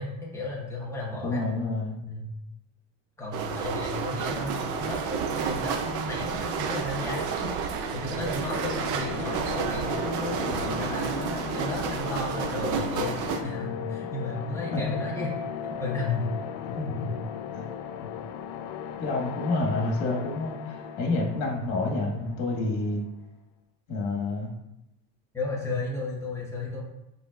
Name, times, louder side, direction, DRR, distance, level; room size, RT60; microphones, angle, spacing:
voice 1, 0.0-1.4 2.0-2.4 3.2-15.3 15.7-16.2 16.7-17.1 18.0-18.1 25.3-26.8, left 2 dB, 10° left, -4 dB, 1.1 m, -34 dB
voice 2, 1.2-1.9 14.7-14.9 16.7-16.8 17.5-17.6 19.0-23.0 23.9-24.5, left 2 dB, 65° left, -1 dB, 1.7 m, -28 dB
sound 1, 3.3-13.4, right 6 dB, 60° right, 0.6 m, -31 dB
sound 2, 8.3-23.0, left 8 dB, 85° left, 0.5 m, -37 dB
5.3 x 4.1 x 2.4 m, 0.89 s
cardioid pair, 150°, 34 cm